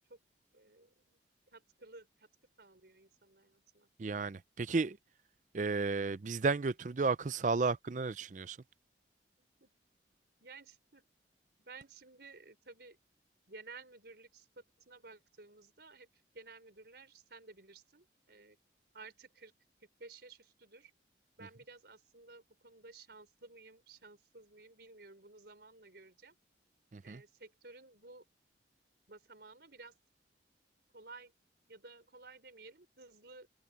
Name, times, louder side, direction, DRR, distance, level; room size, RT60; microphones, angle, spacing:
voice 1, 0.5-1.2 1.5-2.3 2.6-3.9 9.6-9.7 10.4-11.1 11.6-13.0 13.5-16.1 16.3-18.6 18.9-19.5 20.0-20.9 21.4-26.3 27.0-28.2 29.1-30.0 30.9-31.3 31.7-33.5, right 3 dB, 60° right, 4.3 m, -55 dB
voice 2, 4.0-5.0 5.5-8.6 26.9-27.2, right 4 dB, 40° right, 0.4 m, -33 dB
head